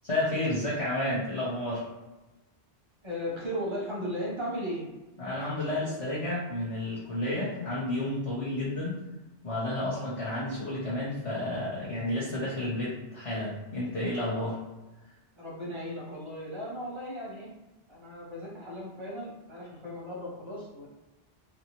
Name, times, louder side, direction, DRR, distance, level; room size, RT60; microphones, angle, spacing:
voice 1, 0.0-1.9 5.2-8.9 9.4-14.6, left 1 dB, 40° left, -8 dB, 0.6 m, -31 dB
voice 2, 3.0-4.9 15.4-17.5 17.9-20.9, equal, 35° right, -4 dB, 0.6 m, -36 dB
2.8 x 2.1 x 2.8 m, 1.1 s
omnidirectional pair, 1.1 m